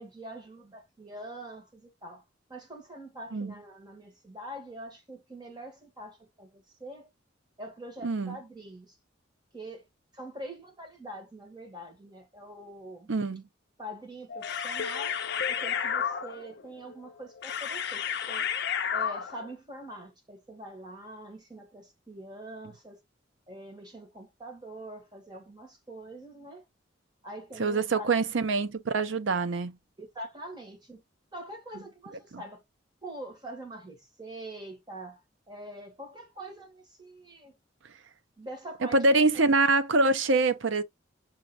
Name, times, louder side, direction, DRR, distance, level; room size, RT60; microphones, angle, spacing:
voice 1, 0.0-2.2 2.5-7.1 7.6-8.9 9.5-9.8 10.1-13.1 13.8-15.2 15.5-18.5 18.9-23.0 23.5-26.6 27.2-28.1 30.0-31.0 31.3-32.6 33.0-35.2 35.5-37.6 38.4-39.2, right 1 dB, 25° right, 1.7 m, -44 dB
voice 2, 8.0-8.4 13.1-13.5 27.6-29.8 31.7-31.8 32.3-32.4 38.8-40.8, right 3 dB, 75° right, 0.6 m, -25 dB
sound 1, 14.3-19.5, left 7 dB, 60° left, 0.6 m, -32 dB
6.1 x 2.8 x 2.4 m
head